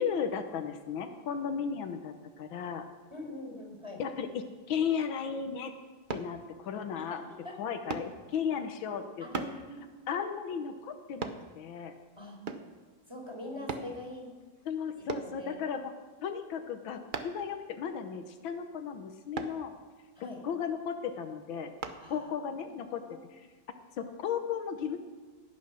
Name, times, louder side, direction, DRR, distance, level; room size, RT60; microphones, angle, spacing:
voice 1, 0.0-2.9 4.0-5.7 6.1-7.2 7.6-9.5 10.1-12.0 14.7-15.9 16.2-19.7 20.2-21.7 22.1-23.0 24.0-25.0, left 7 dB, 85° left, 7 dB, 1.7 m, -35 dB
voice 2, 3.1-4.0 6.9-7.5 9.2-9.8 12.2-12.4 13.1-14.3 15.0-15.5 20.2-20.4 22.0-22.3 22.8-23.2, left 1 dB, 15° right, 0 dB, 4.4 m, -43 dB
sound 1, 6.1-6.3 7.9-8.1 9.3-9.6 11.2-11.4 12.5-12.7 13.7-13.9 15.1-15.3 17.1-17.4 19.3-19.6 21.8-22.0 22.6-22.7, right 4 dB, 55° right, 0.5 m, -36 dB
16.0 x 9.4 x 6.2 m, 1.4 s
omnidirectional pair, 2.1 m